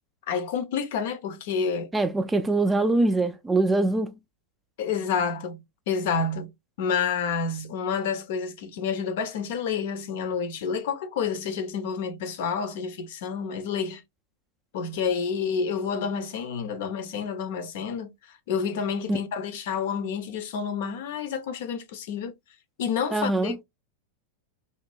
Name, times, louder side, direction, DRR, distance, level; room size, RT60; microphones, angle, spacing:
voice 1, 0.3-1.9 4.8-6.5 6.8-14.0 14.7-22.3 22.8-23.6, left 6 dB, 55° left, 0.5 m, -29 dB
voice 2, 1.9-4.1 19.1-19.2 23.1-23.6, right 2 dB, 10° right, 0.3 m, -23 dB
2.6 x 2.0 x 3.2 m
figure-of-eight pair, 90°, 0 cm